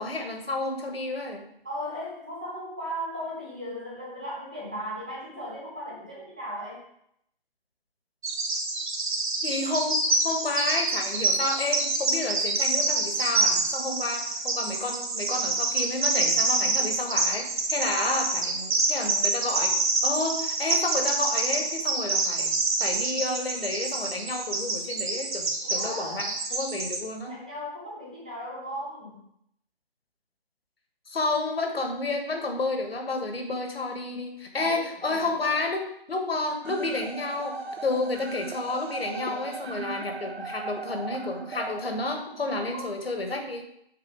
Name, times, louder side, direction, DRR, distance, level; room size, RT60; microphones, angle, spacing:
voice 1, 0.0-1.5 9.4-19.7 20.0-22.5 22.8-27.4 31.1-35.8 36.1-43.7, left 2 dB, 75° left, 3 dB, 1.5 m, -30 dB
voice 2, 1.6-6.8 17.8-18.2 25.6-26.3 27.3-29.2 34.5-35.6 39.0-39.4 42.6-42.9, equal, 10° right, -5 dB, 0.4 m, -37 dB
Bird vocalization bird call bird song, 8.2-27.0, right 3 dB, 50° right, 1.1 m, -27 dB
sound 1, 36.6-42.6, right 4 dB, 80° right, 0.8 m, -38 dB
7.5 x 2.8 x 5.1 m, 0.74 s
figure-of-eight pair, 150°, 30 cm